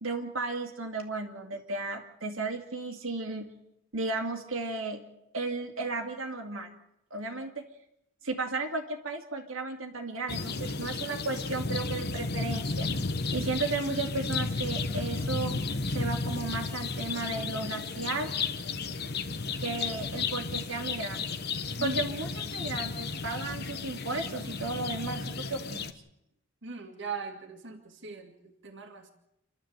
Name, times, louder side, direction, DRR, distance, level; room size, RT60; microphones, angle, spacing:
voice 1, 0.0-3.5 3.9-5.0 5.3-6.7 7.1-7.6 8.2-12.9 13.3-18.3 19.6-21.4 21.8-25.9, right 3 dB, 75° right, 2 dB, 2.4 m, -34 dB
sound 1, 10.3-25.9, left 4 dB, 50° left, 1.2 m, -33 dB
voice 2, 21.8-22.1 26.6-29.1, right 4 dB, 60° right, 3 dB, 2.3 m, -40 dB
28.5 x 12.5 x 8.0 m, 0.82 s
head